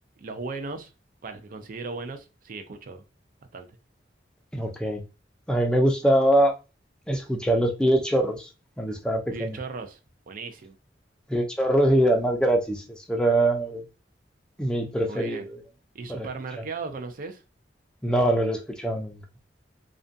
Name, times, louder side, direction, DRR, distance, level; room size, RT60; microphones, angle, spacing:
voice 1, 0.2-0.9 1.2-3.0 3.5-3.7 9.3-10.0 10.3-10.8 15.1-15.5 15.9-17.4, right 4 dB, 50° right, 0.4 m, -36 dB
voice 2, 4.5-5.0 5.5-6.6 7.1-8.5 8.8-9.6 11.3-13.8 14.6-15.6 16.1-16.3 16.6-16.7 18.0-19.2, right 1 dB, 5° left, 0.4 m, -23 dB
2.5 x 2.2 x 2.5 m
head